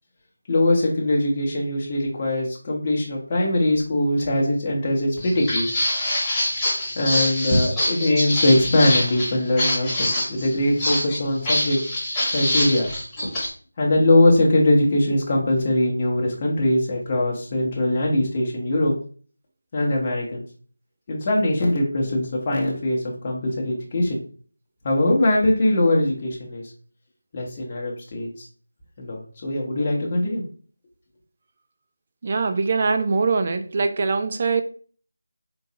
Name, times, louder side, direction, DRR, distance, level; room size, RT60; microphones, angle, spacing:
voice 1, 0.5-5.7 6.9-11.8 12.3-12.9 13.8-18.9 19.7-20.5 21.1-24.2 24.8-26.6 27.3-28.3 29.0-30.4, left 1 dB, 25° left, -2 dB, 0.8 m, -21 dB
Walk footsteps, 5.2-13.5, left 1 dB, 10° left, 1.0 m, -25 dB
voice 2, 32.2-34.6, right 4 dB, 35° right, 8 dB, 0.3 m, -22 dB
3.8 x 2.4 x 2.8 m, 0.42 s
figure-of-eight pair, 170°, 0 cm